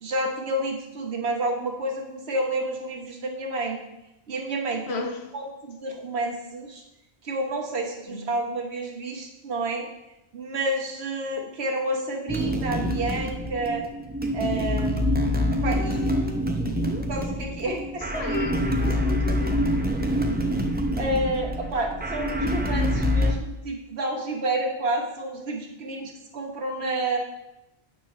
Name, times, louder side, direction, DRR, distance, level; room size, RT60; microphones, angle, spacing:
voice 1, 0.0-3.8 4.3-5.0 5.3-6.8 7.2-9.9 10.3-13.9 14.3-16.0 17.1-18.2 21.0-27.2, right 2 dB, 70° right, 1 dB, 1.3 m, -30 dB
voice 2, 4.9-5.2 8.1-8.2 15.7-16.4 18.1-19.7, left 4 dB, 75° left, 4 dB, 1.1 m, -34 dB
sound 1, 12.3-23.3, equal, 10° right, 0.5 m, -26 dB
8.5 x 6.0 x 3.2 m, 0.94 s
omnidirectional pair, 1.1 m